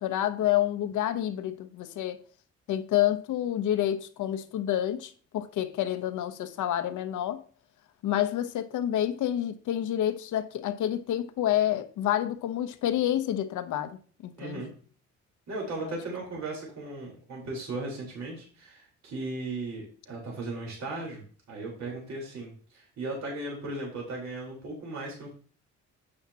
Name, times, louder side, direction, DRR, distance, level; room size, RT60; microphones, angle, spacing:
voice 1, 0.0-2.2 2.7-7.4 8.0-14.6 15.8-16.0, left 12 dB, 80° left, 0.9 m, -28 dB
voice 2, 14.4-14.7 15.5-25.3, right 2 dB, 60° right, 4.1 m, -37 dB
9.7 x 8.9 x 2.9 m
cardioid pair, 90°, 30 cm